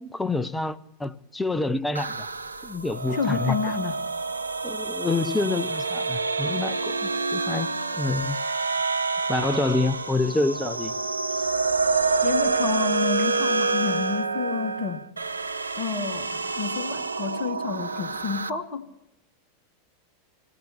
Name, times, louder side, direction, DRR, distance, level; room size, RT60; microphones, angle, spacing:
voice 1, 0.1-2.3 2.6-3.6 4.6-8.4 9.3-10.9, left 3 dB, 10° left, 0.8 m, -27 dB
sound 1, 1.9-18.5, right 4 dB, 85° right, 0.6 m, -27 dB
voice 2, 3.1-4.0 12.2-15.1 15.7-18.9, left 6 dB, 45° left, 1.7 m, -30 dB
27.0 x 17.5 x 3.0 m
figure-of-eight pair, 90°, 0 cm